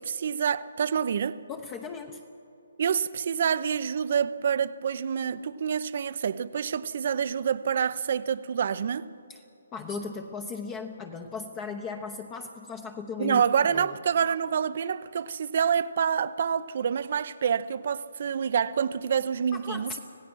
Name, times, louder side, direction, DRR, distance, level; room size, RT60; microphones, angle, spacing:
voice 1, 0.0-1.4 2.8-9.1 13.2-19.9, right 7 dB, 50° right, 0.7 m, -27 dB
voice 2, 1.5-2.2 9.3-9.4 9.7-13.4 13.7-14.0 19.5-20.0, left 4 dB, 20° left, 0.9 m, -37 dB
26.0 x 17.0 x 6.3 m
hypercardioid pair, 160°, 0 cm